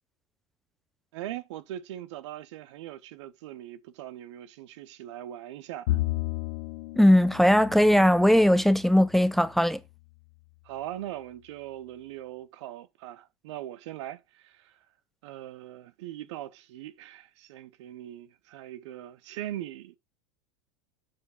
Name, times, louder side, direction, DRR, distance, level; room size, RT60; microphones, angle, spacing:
voice 1, 1.1-6.0 10.6-14.7 15.2-20.0, right 13 dB, 65° right, 0.9 m, -40 dB
Bowed string instrument, 5.9-9.4, left 16 dB, 70° left, 1.5 m, -33 dB
voice 2, 7.0-9.8, equal, ahead, 0.7 m, -19 dB
7.6 x 4.7 x 5.4 m
hypercardioid pair, 85°, 16 cm